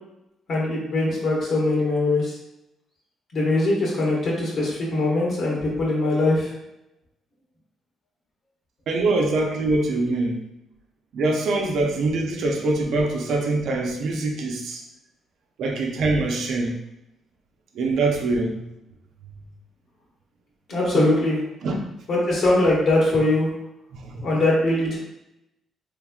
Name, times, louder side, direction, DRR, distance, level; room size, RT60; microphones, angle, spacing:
voice 1, 0.5-2.3 3.3-6.5 20.7-21.4 22.1-23.5 24.2-25.0, left 2 dB, 60° left, -4 dB, 1.5 m, -21 dB
voice 2, 8.9-10.4 11.1-14.8 15.6-16.7 17.7-18.6 20.9-21.1 21.6-21.9 23.9-24.3, right 2 dB, 75° right, 1 dB, 0.6 m, -24 dB
3.5 x 3.2 x 2.3 m, 0.88 s
cardioid pair, 90°, 0 cm